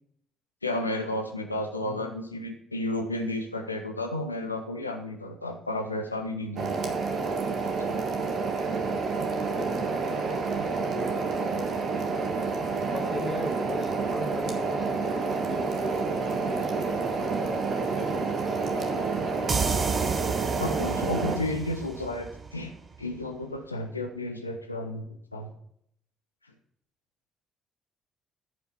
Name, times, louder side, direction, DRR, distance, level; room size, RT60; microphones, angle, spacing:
voice 1, 0.6-6.7 20.6-22.7 23.0-25.5, left 1 dB, 90° left, 5 dB, 0.7 m, -32 dB
voice 2, 1.8-2.2 9.6-10.0 10.6-11.4 12.9-19.6, left 2 dB, 25° left, 2 dB, 2.1 m, -40 dB
sound 1, 6.6-21.4, right 4 dB, 55° right, 1.5 m, -29 dB
sound 2, 19.5-23.0, right 5 dB, 40° right, 1.0 m, -31 dB
14.0 x 5.6 x 4.4 m, 0.71 s
figure-of-eight pair, 45°, 0 cm